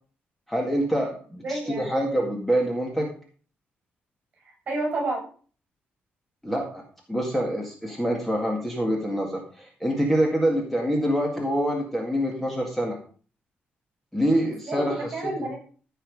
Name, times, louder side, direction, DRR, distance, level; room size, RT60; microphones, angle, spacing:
voice 1, 0.5-3.1 6.4-6.8 7.1-13.0 14.1-15.1, equal, 5° left, 0 dB, 1.9 m, -25 dB
voice 2, 1.4-2.0 4.4-5.3 14.5-15.6, right 2 dB, 40° right, 1 dB, 7.3 m, -30 dB
14.5 x 5.8 x 5.4 m, 0.41 s
wide cardioid pair, 165°, 4 cm